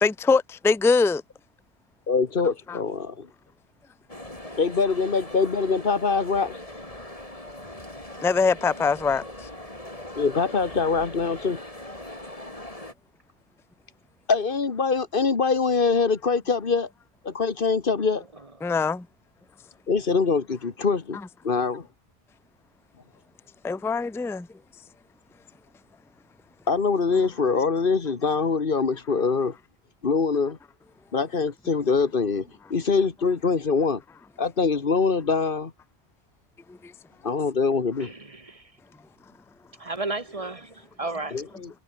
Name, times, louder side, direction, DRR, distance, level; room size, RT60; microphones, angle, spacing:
voice 1, 0.0-1.2 2.7-2.8 8.2-9.2 18.6-19.1 23.6-24.5, left 4 dB, 5° left, 0.3 m, -22 dB
voice 2, 2.1-3.3 4.6-6.6 10.2-11.6 14.3-16.9 17.2-18.2 19.9-21.2 21.4-21.9 26.7-29.6 30.0-30.6 31.1-34.0 34.4-35.7 37.2-38.1 41.3-41.7, left 4 dB, 60° left, 1.8 m, -24 dB
sound 1, 4.1-12.9, left 1 dB, 35° left, 5.4 m, -40 dB
voice 3, 38.0-38.7 39.8-41.6, right 2 dB, 35° right, 2.3 m, -34 dB
omnidirectional pair, 1.0 m